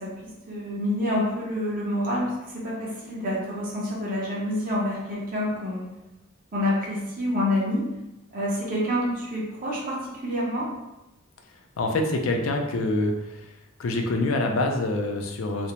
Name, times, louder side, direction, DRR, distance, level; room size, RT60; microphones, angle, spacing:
voice 1, 0.0-5.9 6.5-7.8 8.3-10.7, left 1 dB, 40° right, -5 dB, 0.6 m, -27 dB
voice 2, 11.8-13.5 13.8-15.7, left 2 dB, 70° left, 3 dB, 0.4 m, -26 dB
2.5 x 2.0 x 2.9 m, 0.97 s
head